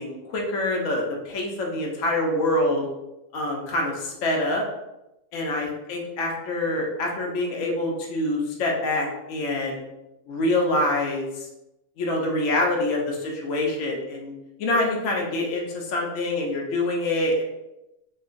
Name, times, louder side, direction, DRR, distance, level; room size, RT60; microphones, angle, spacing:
voice 1, 0.0-2.8 3.3-4.6 5.3-9.8 10.3-11.5 12.0-14.3 14.6-17.4, left 1 dB, 80° left, -1 dB, 1.0 m, -25 dB
2.9 x 2.5 x 2.4 m, 0.93 s
omnidirectional pair, 1.4 m